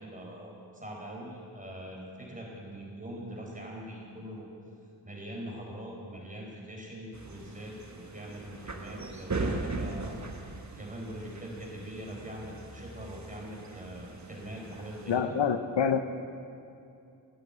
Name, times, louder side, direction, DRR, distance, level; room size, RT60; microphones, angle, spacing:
voice 1, 0.0-4.5 5.0-10.2 10.8-15.3, right 1 dB, 15° right, -2 dB, 4.4 m, -42 dB
sound 1, 7.1-15.2, right 3 dB, 40° right, 1.5 m, -39 dB
voice 2, 15.1-16.0, left 7 dB, 75° left, 9 dB, 0.8 m, -26 dB
15.5 x 8.4 x 8.1 m, 2.6 s
cardioid pair, 60°, 44 cm